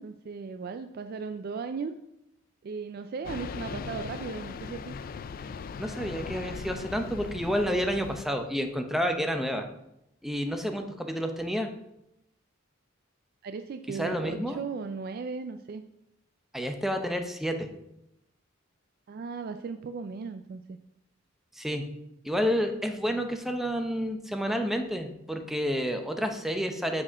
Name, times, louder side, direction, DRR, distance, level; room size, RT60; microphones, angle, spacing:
voice 1, 0.0-1.9 2.6-4.9 13.4-15.8 19.1-20.8, right 5 dB, 50° right, 9 dB, 0.3 m, -37 dB
sound 1, 3.2-8.2, left 5 dB, 45° left, 0.3 m, -39 dB
voice 2, 5.8-9.6 10.2-11.7 13.9-14.6 16.5-17.7 21.6-21.8 22.2-27.0, equal, ahead, 5 dB, 0.7 m, -30 dB
7.4 x 4.2 x 6.2 m, 0.83 s
head